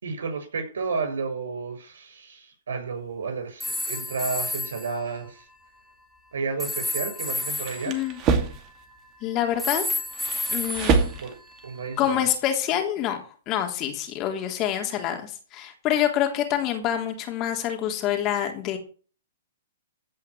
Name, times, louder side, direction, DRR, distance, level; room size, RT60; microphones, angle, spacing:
voice 1, 0.0-5.4 6.3-8.0 11.2-11.3 11.6-12.2, right 4 dB, 80° right, 6 dB, 6.8 m, -31 dB
sound 1, 3.6-4.9 6.6-9.1 9.6-11.9, left 1 dB, ahead, 2.0 m, -31 dB
sound 2, 7.3-8.7 9.5-11.6, right 5 dB, 30° right, 2.4 m, -26 dB
voice 2, 7.9-8.2 9.2-9.8 10.5-11.0 12.0-13.2 13.5-18.8, left 10 dB, 30° left, 4 dB, 3.3 m, -26 dB
15.5 x 5.6 x 8.6 m, 0.40 s
hypercardioid pair, 135°, 0 cm